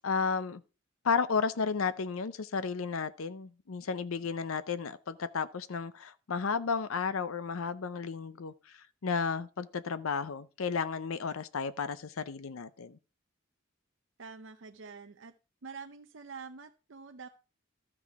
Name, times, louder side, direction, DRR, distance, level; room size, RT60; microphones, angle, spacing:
voice 1, 0.0-0.6 1.0-8.5 9.0-13.0, left 5 dB, 85° left, 0.6 m, -33 dB
voice 2, 14.2-15.3 15.6-17.3, right 5 dB, 65° right, 0.6 m, -46 dB
13.0 x 6.1 x 4.7 m
head